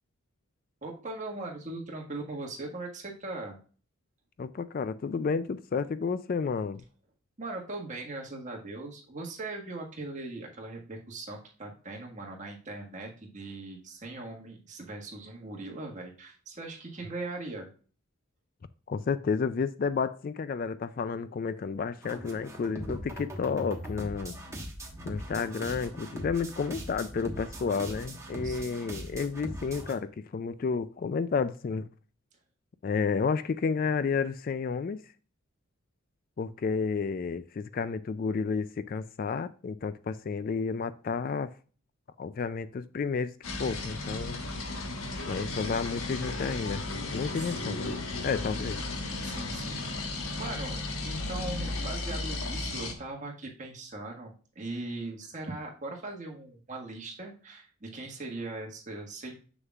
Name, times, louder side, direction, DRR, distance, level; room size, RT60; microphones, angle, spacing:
voice 1, 0.8-3.6 7.4-17.7 28.4-28.9 47.3-47.5 49.2-50.8 51.0-59.4, right 2 dB, 35° right, 1.6 m, -40 dB
voice 2, 4.4-6.8 18.9-24.4 25.0-31.9 32.8-35.0 36.4-41.5 42.2-43.3 43.6-44.4 45.3-46.8 47.1-48.8, left 5 dB, 40° left, 0.3 m, -31 dB
sound 1, 22.0-29.9, equal, 15° right, 1.2 m, -40 dB
sound 2, 43.4-52.9, left 2 dB, 80° left, 1.3 m, -35 dB
7.2 x 6.5 x 2.4 m
head